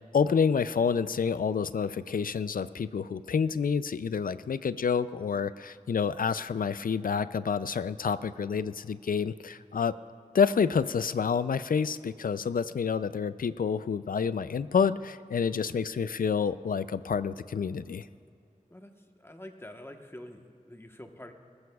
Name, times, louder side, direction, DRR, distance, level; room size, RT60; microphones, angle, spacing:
voice 1, 0.1-9.9 10.3-18.1, left 6 dB, 80° left, 15 dB, 0.4 m, -28 dB
voice 2, 19.2-21.3, left 1 dB, 15° left, 4 dB, 1.2 m, -46 dB
20.0 x 14.0 x 2.3 m, 2.5 s
wide cardioid pair, 50°, 14 cm